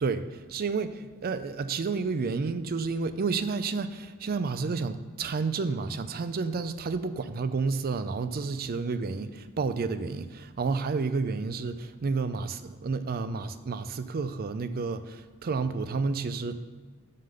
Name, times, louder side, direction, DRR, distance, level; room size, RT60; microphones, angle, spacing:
voice 1, 0.5-16.6, right 4 dB, 45° right, 12 dB, 0.4 m, -30 dB
9.3 x 3.7 x 6.7 m, 1.4 s
head